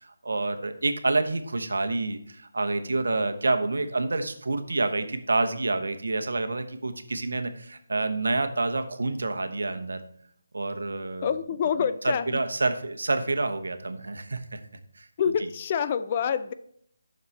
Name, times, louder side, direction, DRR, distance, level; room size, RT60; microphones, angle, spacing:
voice 1, 0.0-10.0 10.5-11.3 11.8-14.6 14.9-15.1 15.4-15.5, right 2 dB, 70° right, 7 dB, 1.0 m, -28 dB
voice 2, 11.2-12.4 15.2-16.5, left 7 dB, 30° left, 12 dB, 0.4 m, -27 dB
9.5 x 6.6 x 3.3 m, 0.68 s
figure-of-eight pair, 155°, 0 cm